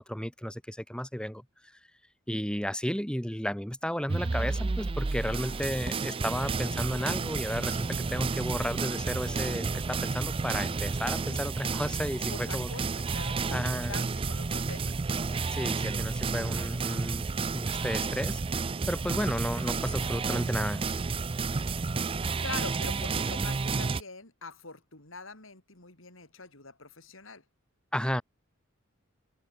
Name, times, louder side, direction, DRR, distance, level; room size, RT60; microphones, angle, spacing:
voice 1, 0.0-1.4 2.3-12.7 13.5-14.0 15.5-18.4 18.9-20.8 27.9-28.2, equal, 5° left, 4.8 m, -33 dB
sound 1, 4.1-24.0, right 4 dB, 25° right, 0.4 m, -31 dB
voice 2, 12.3-14.9 22.4-27.4, left 4 dB, 70° left, 5.5 m, -44 dB
head